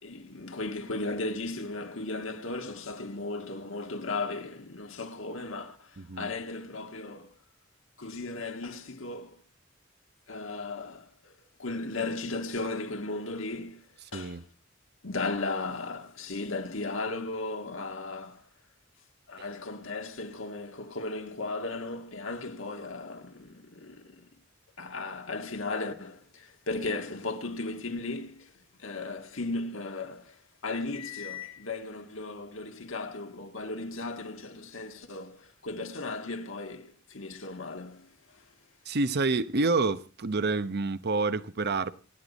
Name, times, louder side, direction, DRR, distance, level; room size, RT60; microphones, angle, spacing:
voice 1, 0.0-7.3 8.0-9.4 10.3-13.9 14.1-14.4 15.0-18.5 19.3-24.3 24.8-38.5, left 3 dB, 70° left, 1.8 m, -36 dB
voice 2, 6.0-6.3 14.1-14.4 38.9-41.9, right 3 dB, 55° right, 0.8 m, -28 dB
27.0 x 9.9 x 4.1 m
head